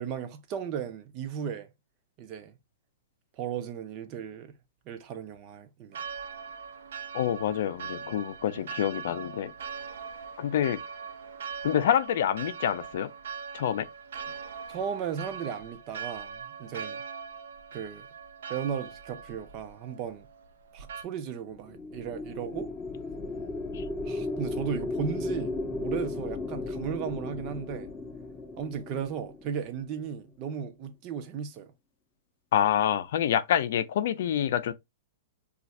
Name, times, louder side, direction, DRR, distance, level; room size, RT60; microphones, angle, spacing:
voice 1, 0.0-1.7 2.2-2.5 3.4-4.5 4.9-6.0 8.5-8.6 14.7-17.0 17.7-18.1 18.5-20.3 20.7-22.7 24.1-27.9 28.6-31.7, right 8 dB, 35° right, 0.5 m, -35 dB
Church bell, 5.9-21.0, right 6 dB, 80° right, 0.6 m, -41 dB
voice 2, 7.1-9.5 10.4-10.8 11.6-13.1 13.5-13.9 23.7-23.8 32.5-34.7, left 10 dB, 65° left, 0.5 m, -27 dB
sound 1, 21.5-30.0, left 2 dB, 15° left, 0.5 m, -35 dB
2.4 x 2.4 x 4.1 m
hypercardioid pair, 155°, 0 cm